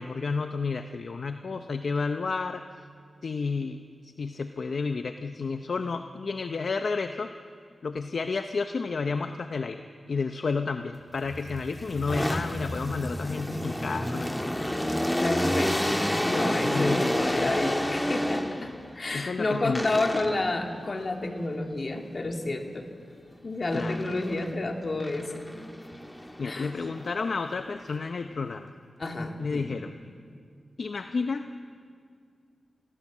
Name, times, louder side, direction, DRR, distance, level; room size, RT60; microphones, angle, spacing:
voice 1, 0.0-2.6 3.2-3.8 4.2-7.3 7.8-14.3 16.6-17.7 19.1-20.0 23.7-24.0 26.4-28.7 29.4-29.9 30.8-31.4, left 4 dB, 65° left, 8 dB, 0.7 m, -31 dB
sound 1, 11.2-18.9 19.7-20.6 23.7-24.5 25.0-27.4, left 1 dB, 10° left, 1.5 m, -30 dB
voice 2, 15.2-22.9 23.4-25.4 26.4-26.7 29.0-29.8, left 2 dB, 45° left, 3 dB, 2.4 m, -30 dB
25.5 x 17.0 x 7.4 m, 2.2 s
wide cardioid pair, 80°, 0 cm